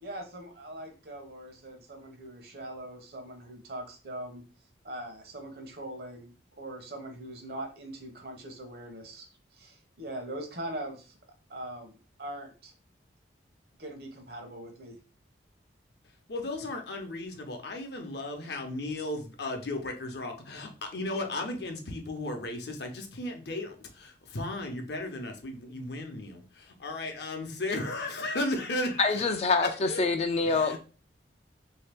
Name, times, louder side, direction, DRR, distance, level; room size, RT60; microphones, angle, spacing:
voice 1, 0.0-4.4 4.8-6.3 6.6-11.2 11.5-12.7 13.8-15.0, right 1 dB, 55° right, 0.8 m, -41 dB
voice 2, 16.3-29.3 29.6-30.0 30.4-30.8, left 2 dB, 60° left, 0.7 m, -35 dB
voice 3, 29.0-30.8, left 4 dB, 35° left, 0.3 m, -25 dB
3.2 x 2.8 x 3.4 m
head